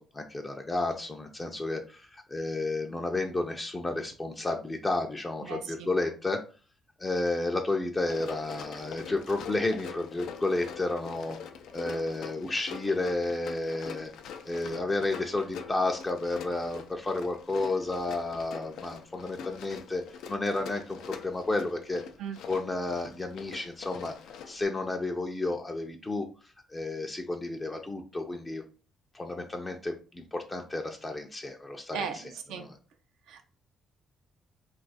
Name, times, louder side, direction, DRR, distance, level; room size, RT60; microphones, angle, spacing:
voice 1, 0.0-6.4 7.0-11.4 11.7-14.1 14.4-20.0 20.3-22.0 22.4-24.1 24.5-26.3 26.7-28.6 29.1-32.8, left 2 dB, 20° left, 3 dB, 0.4 m, -31 dB
voice 2, 5.4-5.9 22.2-22.4 31.9-32.2 32.5-32.6 33.3-33.4, right 6 dB, 90° right, 5 dB, 0.5 m, -36 dB
Run, 8.0-24.7, left 6 dB, 85° left, 0.3 m, -44 dB
2.4 x 2.3 x 4.0 m, 0.37 s
cardioid pair, 90°, 0 cm